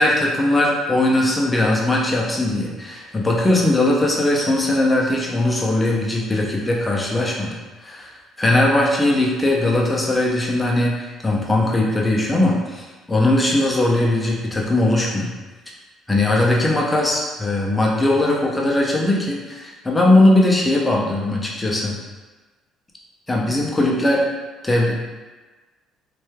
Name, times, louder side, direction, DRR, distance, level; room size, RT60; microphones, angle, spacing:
voice 1, 0.0-7.5 7.8-8.1 8.4-15.3 16.1-22.0 23.3-24.2 24.6-24.9, left 1 dB, 10° left, -2 dB, 0.4 m, -19 dB
3.2 x 2.2 x 3.1 m, 1.2 s
cardioid pair, 175°, 0 cm